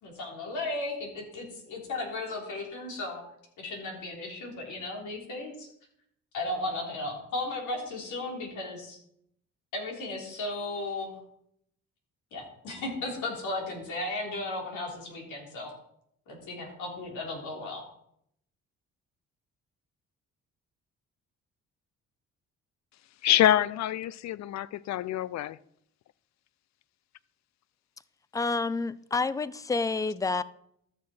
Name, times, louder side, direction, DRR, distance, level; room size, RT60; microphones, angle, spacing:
voice 1, 0.0-3.2 3.6-5.7 6.3-9.0 9.7-11.2 12.3-15.7 16.3-17.8, left 2 dB, 80° left, 3.5 m, -35 dB
voice 2, 23.2-25.6, left 12 dB, 65° left, 0.5 m, -26 dB
voice 3, 28.3-30.4, left 4 dB, 10° left, 0.4 m, -29 dB
13.5 x 6.6 x 4.3 m
cardioid pair, 90°, 30 cm